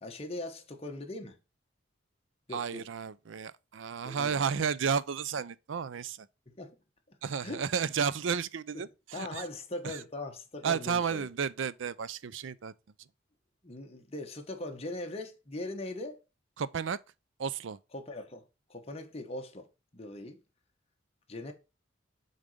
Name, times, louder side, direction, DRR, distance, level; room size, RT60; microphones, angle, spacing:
voice 1, 0.0-1.4 2.5-2.9 4.0-4.5 6.5-6.8 7.4-7.6 8.7-11.3 13.6-16.2 17.9-18.4 18.7-19.7 19.9-20.4 21.3-21.5, left 2 dB, 30° left, 1.3 m, -40 dB
voice 2, 2.5-6.3 7.2-9.4 9.8-10.0 10.6-12.7 16.6-17.0 17.4-17.8, right 6 dB, 75° right, 0.5 m, -32 dB
7.1 x 4.0 x 5.0 m
head